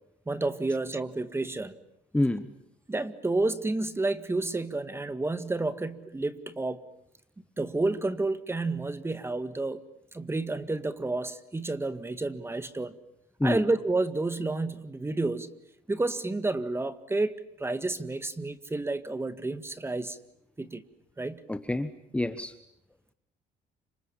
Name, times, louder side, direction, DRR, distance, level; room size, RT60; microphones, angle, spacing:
voice 1, 0.3-1.7 2.9-6.8 7.6-9.8 10.1-12.9 13.4-15.5 15.9-20.2 20.6-20.8 21.2-21.4, right 2 dB, 15° right, 11 dB, 1.8 m, -30 dB
voice 2, 2.1-2.5 13.4-13.6 21.5-22.5, left 1 dB, 5° left, 10 dB, 1.2 m, -27 dB
30.0 x 27.0 x 7.4 m, 0.80 s
cardioid pair, 110°, 17 cm